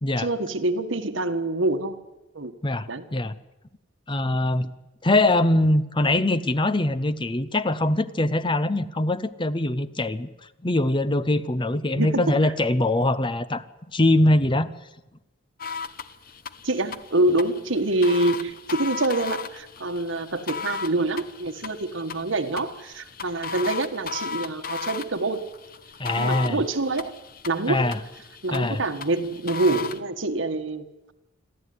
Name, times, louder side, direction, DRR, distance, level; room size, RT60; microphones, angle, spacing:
voice 1, 0.2-2.0 2.3-2.5 2.9-3.0 11.9-12.5 16.6-25.5 26.2-27.1 27.4-27.8 28.4-31.1, right 2 dB, 80° right, 8 dB, 1.6 m, -26 dB
voice 2, 2.6-3.3 4.1-4.7 5.0-10.3 10.6-13.6 13.9-14.7 26.0-26.6 27.7-28.0 28.5-28.8, left 1 dB, 25° left, 14 dB, 0.8 m, -22 dB
sound 1, 15.6-30.0, left 5 dB, 50° left, 1.0 m, -36 dB
26.5 x 13.5 x 9.5 m, 1.0 s
head